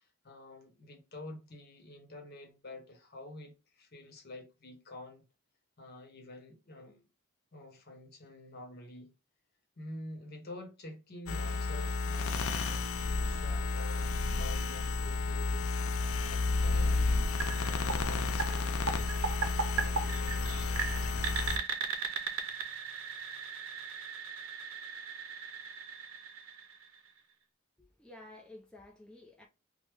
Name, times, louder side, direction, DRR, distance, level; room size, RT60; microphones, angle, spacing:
voice 1, 0.0-5.3 5.8-7.1 7.5-9.1 9.8-15.7 16.2-17.1 17.6-19.5 19.7-20.8, left 2 dB, 45° left, 0.8 m, -48 dB
sound 1, 11.3-21.6, left 3 dB, 85° left, 0.4 m, -31 dB
sound 2, 17.4-27.2, right 5 dB, 80° right, 0.6 m, -38 dB
voice 2, 27.8-29.5, left 1 dB, 5° left, 0.4 m, -52 dB
3.2 x 2.1 x 3.3 m
head